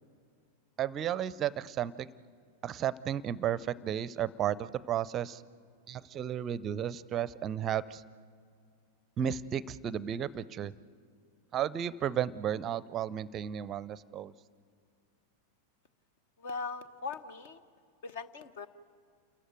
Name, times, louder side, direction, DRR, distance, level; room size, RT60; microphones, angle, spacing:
voice 1, 0.8-2.1 2.6-5.4 5.9-8.0 9.2-10.7 11.5-14.3, right 10 dB, 30° right, 20 dB, 0.5 m, -33 dB
voice 2, 16.4-17.6 18.0-18.7, left 4 dB, 55° left, 14 dB, 1.1 m, -40 dB
28.5 x 14.5 x 9.2 m, 2.2 s
figure-of-eight pair, 90°, 0 cm